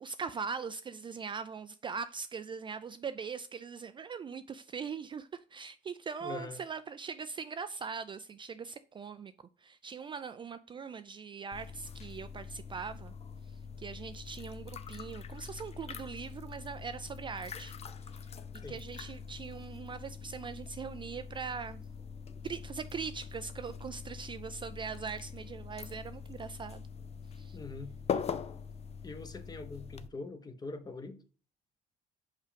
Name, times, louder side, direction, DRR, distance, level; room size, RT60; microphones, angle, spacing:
voice 1, 0.0-9.3 9.6-13.1 13.4-17.7 18.0-18.3 18.7-21.8 22.4-26.9 27.3-27.6, right 5 dB, 30° right, 0.3 m, -41 dB
voice 2, 6.2-6.6 18.6-18.8 27.5-27.9 29.0-31.2, left 3 dB, 25° left, 0.9 m, -43 dB
sound 1, 11.5-30.1, left 6 dB, 40° left, 0.6 m, -43 dB
5.4 x 5.0 x 5.1 m
cardioid pair, 110°, 17 cm